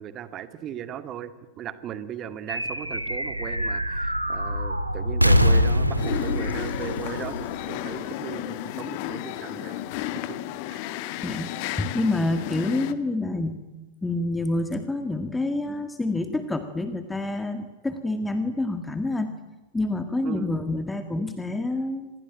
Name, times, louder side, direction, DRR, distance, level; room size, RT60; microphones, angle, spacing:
voice 1, 0.0-9.8 10.3-10.4 10.7-10.8 20.2-20.6 21.2-21.3, right 9 dB, 30° right, 12 dB, 2.0 m, -37 dB
sound 1, 2.5-8.2, equal, 90° right, 1.7 m, -24 dB
sound 2, 6.0-12.9, left 14 dB, 45° left, 1.6 m, -33 dB
voice 2, 11.2-13.6 14.0-19.3 19.7-22.1, left 2 dB, 10° left, 8 dB, 1.8 m, -27 dB
27.0 x 20.5 x 9.0 m, 1.1 s
figure-of-eight pair, 90°, 0 cm